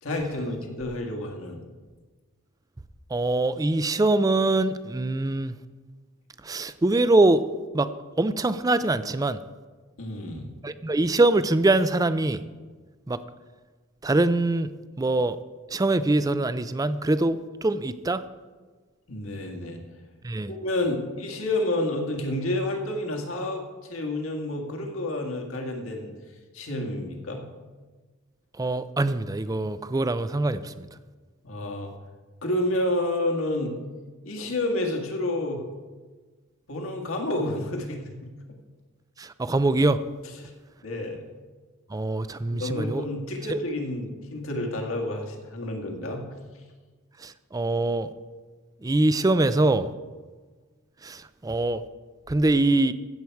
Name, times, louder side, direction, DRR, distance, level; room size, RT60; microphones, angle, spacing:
voice 1, 0.0-1.6 10.0-10.5 19.1-19.8 20.4-26.1 26.5-27.4 31.4-31.9 32.4-33.8 34.2-35.6 36.7-38.3 40.4-40.5 40.8-41.2 42.5-46.2, left 1 dB, 75° left, 1 dB, 1.8 m, -29 dB
voice 2, 3.1-5.6 6.4-7.4 7.7-7.9 8.2-9.4 10.6-12.4 13.1-13.2 14.0-14.7 15.0-15.4 15.7-18.2 20.2-20.5 28.6-30.9 39.2-40.0 41.9-43.0 47.2-48.1 48.8-49.9 51.0-51.8 52.3-52.9, right 2 dB, 15° right, 13 dB, 0.4 m, -23 dB
15.5 x 7.8 x 4.6 m, 1.4 s
head